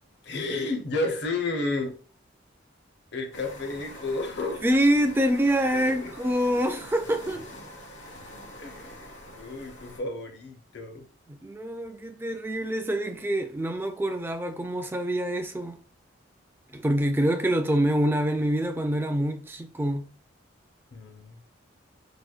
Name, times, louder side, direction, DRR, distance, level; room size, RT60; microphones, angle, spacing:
voice 1, 0.2-1.9 3.1-4.6 5.9-6.1 8.6-11.1 20.9-21.4, left 2 dB, 60° left, 0.7 m, -32 dB
sound 1, 3.3-10.0, left 1 dB, 90° left, 1.1 m, -45 dB
voice 2, 4.6-7.4 11.3-15.8 16.7-20.1, equal, 10° right, 0.3 m, -26 dB
4.9 x 2.1 x 2.4 m
head